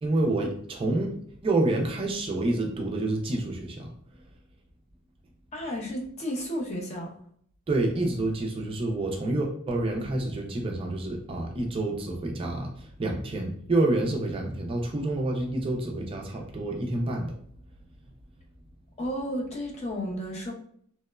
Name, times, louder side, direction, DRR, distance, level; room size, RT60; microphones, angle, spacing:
voice 1, 0.0-1.2 1.4-3.9 7.7-17.3, right 2 dB, 25° right, 1 dB, 0.3 m, -28 dB
voice 2, 5.5-7.1 19.0-20.5, equal, 30° left, -1 dB, 0.5 m, -32 dB
2.9 x 2.0 x 2.2 m, 0.63 s
head